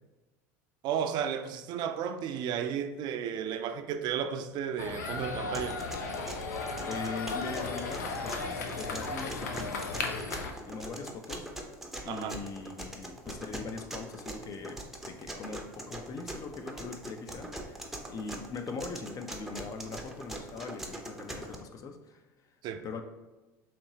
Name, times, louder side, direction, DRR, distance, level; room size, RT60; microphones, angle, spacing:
voice 1, 0.8-5.8 12.1-12.4 22.6-22.8, right 8 dB, 55° right, 0.4 m, -33 dB
sound 1, 4.8-10.5, left 3 dB, 90° left, 0.5 m, -35 dB
sound 2, 5.5-21.6, right 1 dB, 5° right, 0.6 m, -42 dB
voice 2, 6.8-11.5 12.0-22.2 22.8-23.0, left 4 dB, 40° left, 0.5 m, -41 dB
4.3 x 2.9 x 2.7 m
hypercardioid pair, 85°, 9 cm